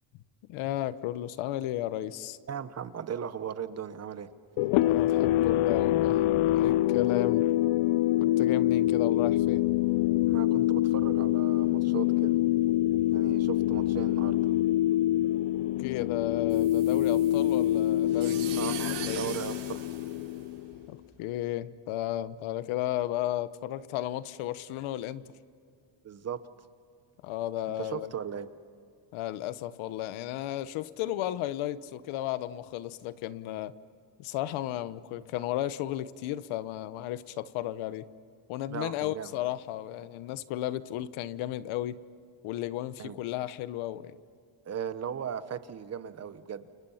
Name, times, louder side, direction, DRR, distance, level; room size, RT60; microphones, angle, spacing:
voice 1, 0.5-2.4 4.7-7.5 8.2-9.6 15.8-19.3 20.9-25.2 27.2-28.1 29.1-33.7 34.2-38.1 38.5-42.0 42.4-44.2, left 13 dB, 90° left, 14 dB, 1.1 m, -34 dB
voice 2, 2.5-4.3 10.2-12.4 13.1-14.5 18.6-19.8 26.0-26.4 27.8-28.5 38.7-39.3 43.0-43.2 44.7-46.7, right 8 dB, 35° right, 12 dB, 1.0 m, -37 dB
sound 1, 4.6-20.9, left 14 dB, 70° left, 0.7 m, -25 dB
sound 2, 16.5-20.8, right 10 dB, 80° right, 7.6 m, -42 dB
30.0 x 29.0 x 5.8 m, 2.4 s
cardioid pair, 150°, 47 cm